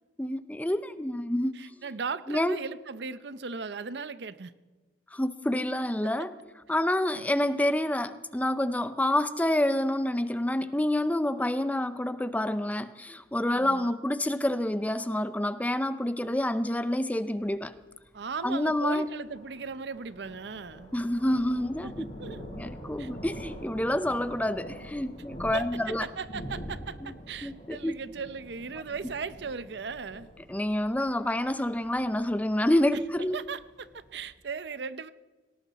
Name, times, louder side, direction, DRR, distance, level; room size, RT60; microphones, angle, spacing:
voice 1, 0.2-1.6 2.3-2.6 5.1-6.3 6.7-17.7 18.4-19.1 20.9-22.0 22.5-26.1 27.0-27.1 27.4-27.9 30.5-33.4, left 1 dB, 10° left, 13 dB, 0.5 m, -28 dB
voice 2, 1.6-4.5 7.1-7.3 13.5-13.9 18.1-20.9 21.8-22.4 23.0-23.1 25.5-30.3 33.3-35.1, right 5 dB, 65° right, 15 dB, 0.6 m, -37 dB
Thunder, 17.4-34.3, equal, 50° left, 6.5 m, -45 dB
18.5 x 18.0 x 4.1 m, 1.3 s
head